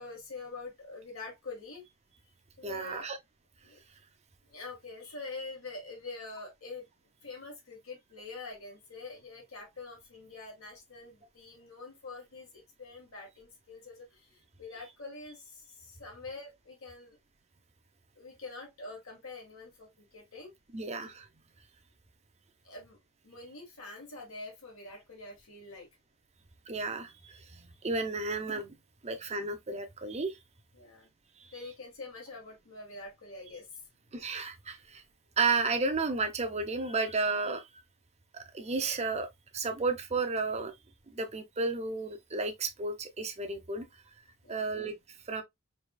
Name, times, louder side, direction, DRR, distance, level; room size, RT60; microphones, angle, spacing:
voice 1, 0.0-1.8 2.6-3.1 3.6-3.8 4.5-6.8 7.2-17.2 18.1-20.5 22.6-23.0 23.2-25.9 30.7-31.1 31.5-33.8 44.4-44.8, left 3 dB, 75° left, 1.6 m, -45 dB
voice 2, 2.6-3.2 20.7-21.3 26.7-28.7 29.0-30.4 31.4-31.5 34.1-35.0 35.4-37.7 38.3-39.3 39.5-40.7 41.1-43.9 44.5-44.9 45.3-45.4, right 3 dB, 30° right, 0.7 m, -32 dB
4.8 x 3.0 x 2.3 m
head